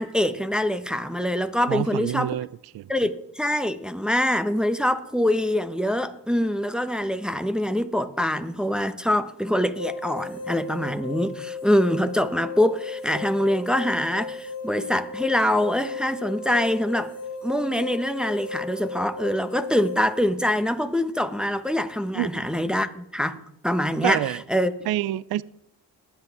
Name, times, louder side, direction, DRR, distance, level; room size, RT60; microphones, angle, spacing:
voice 1, 0.0-2.4 2.9-17.1 17.4-24.2 24.5-24.7, left 1 dB, ahead, 1.1 m, -24 dB
voice 2, 1.7-2.5 2.7-2.9 22.1-22.5 24.0-24.4 24.9-25.4, right 14 dB, 55° right, 0.5 m, -27 dB
sound 1, 9.8-20.2, left 4 dB, 85° left, 2.7 m, -35 dB
21.5 x 8.1 x 3.6 m
supercardioid pair, 50°, 45 cm